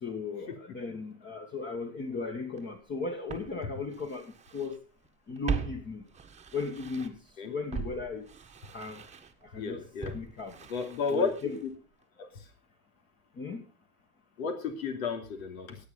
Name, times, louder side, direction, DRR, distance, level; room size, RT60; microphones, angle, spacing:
voice 1, 0.0-4.8 5.3-6.0 6.5-7.2 7.4-8.3 8.7-9.0 9.4-9.8 10.1-10.6 11.1-11.6 13.4-13.7, left 4 dB, 25° left, 3 dB, 1.9 m, -36 dB
Walk footsteps, 2.6-2.7 3.3-4.8 5.0-7.3 7.7-11.8 12.0-12.1, right 6 dB, 15° right, 1.5 m, -40 dB
voice 2, 9.6-10.2 10.7-11.5 12.2-12.3 14.4-15.8, left 5 dB, 75° left, 5 dB, 3.0 m, -32 dB
17.0 x 8.5 x 5.5 m, 0.36 s
hypercardioid pair, 105°, 42 cm